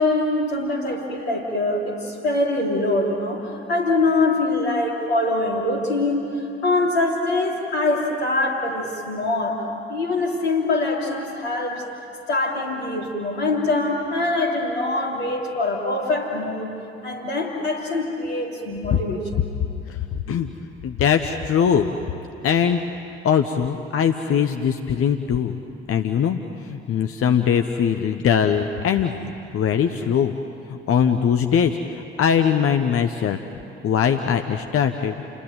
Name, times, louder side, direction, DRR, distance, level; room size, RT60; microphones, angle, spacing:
voice 1, 0.0-11.9 12.3-16.8 17.0-19.2, left 2 dB, 75° left, -1 dB, 3.3 m, -23 dB
voice 2, 20.8-21.9 22.4-22.8 23.2-25.5 25.9-26.4 26.7-30.3 30.7-33.4 33.8-35.2, left 8 dB, 45° left, 7 dB, 1.1 m, -21 dB
29.5 x 21.0 x 9.2 m, 2.7 s
figure-of-eight pair, 45°, 32 cm